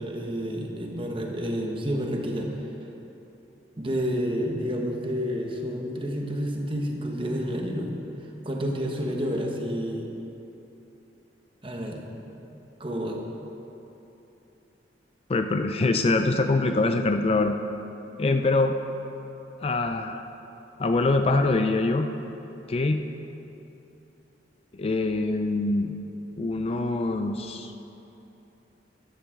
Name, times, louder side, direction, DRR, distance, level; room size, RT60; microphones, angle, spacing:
voice 1, 0.0-2.7 3.8-7.9 8.4-10.1 11.6-12.1 12.8-13.2, equal, 30° right, 1 dB, 1.1 m, -29 dB
voice 2, 15.3-17.6 18.2-18.8 19.6-20.2 20.8-22.1 22.7-23.0 24.7-26.0 26.4-27.7, left 2 dB, 35° left, 6 dB, 0.4 m, -24 dB
13.5 x 10.5 x 3.7 m, 3.0 s
head